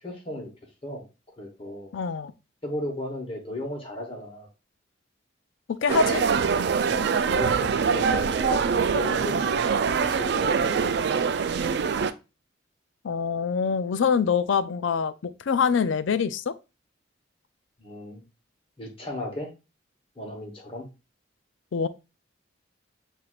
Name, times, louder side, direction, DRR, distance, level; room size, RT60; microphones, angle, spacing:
voice 1, 0.0-0.5 0.8-1.0 1.4-1.9 2.6-4.5 6.8-8.6 8.9-9.7 10.0-10.9 11.2-11.8 17.8-18.2 18.8-19.5 20.2-20.9, left 1 dB, 30° left, 1.1 m, -36 dB
voice 2, 1.9-2.3 5.7-6.2 13.0-16.5 21.7-21.9, left 6 dB, 75° left, 0.4 m, -25 dB
sound 1, 5.9-12.1, right 6 dB, 55° right, 0.3 m, -24 dB
7.5 x 2.7 x 2.4 m
head